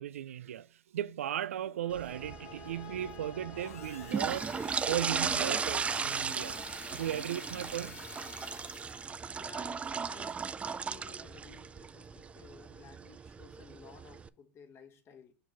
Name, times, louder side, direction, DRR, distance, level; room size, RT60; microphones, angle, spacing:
voice 1, 0.0-6.6 6.9-8.0, right 11 dB, 85° right, 0.3 m, -36 dB
sound 1, 1.8-6.8, left 5 dB, 55° left, 1.6 m, -51 dB
sound 2, 1.9-14.3, right 6 dB, 15° right, 0.4 m, -37 dB
sound 3, 3.5-9.3, left 9 dB, 90° left, 0.6 m, -50 dB
voice 2, 9.3-15.3, left 6 dB, 35° left, 1.4 m, -55 dB
6.2 x 4.7 x 4.4 m
hypercardioid pair, 110°, 7 cm